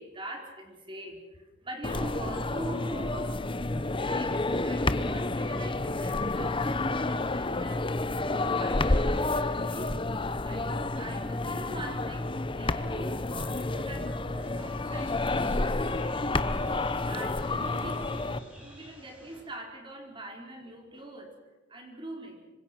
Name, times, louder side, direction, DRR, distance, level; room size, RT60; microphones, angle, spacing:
voice 1, 0.0-3.6 4.0-16.7 17.1-18.3 18.5-21.3 21.7-22.4, right 1 dB, 25° right, 2 dB, 4.7 m, -44 dB
sound 1, 1.8-18.4, left 2 dB, 30° left, 1.0 m, -30 dB
sound 2, 14.4-19.4, equal, 5° right, 7.8 m, -49 dB
26.5 x 25.5 x 6.1 m, 1.2 s
head